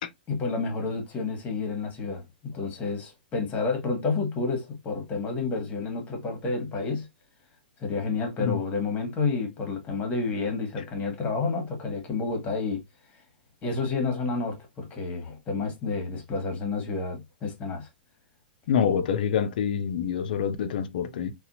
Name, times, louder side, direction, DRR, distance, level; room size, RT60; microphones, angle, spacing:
voice 1, 0.3-7.1 7.8-12.8 13.6-17.9, left 4 dB, 25° left, 1.3 m, -30 dB
voice 2, 18.7-21.3, left 7 dB, 60° left, 0.5 m, -26 dB
4.1 x 2.3 x 2.6 m
hypercardioid pair, 115°, 5 cm